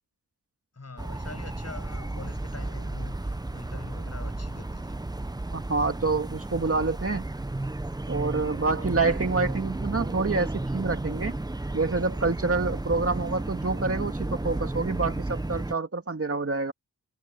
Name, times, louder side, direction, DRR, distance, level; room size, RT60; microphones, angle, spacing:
voice 1, 0.7-5.0 6.7-7.0, left 3 dB, 45° left, 8.0 m, -44 dB
sound 1, 1.0-15.7, right 2 dB, 10° right, 0.7 m, -33 dB
voice 2, 5.5-7.2 8.1-11.3 11.7-16.7, right 3 dB, 40° right, 2.1 m, -27 dB
wide cardioid pair, 75°, 36 cm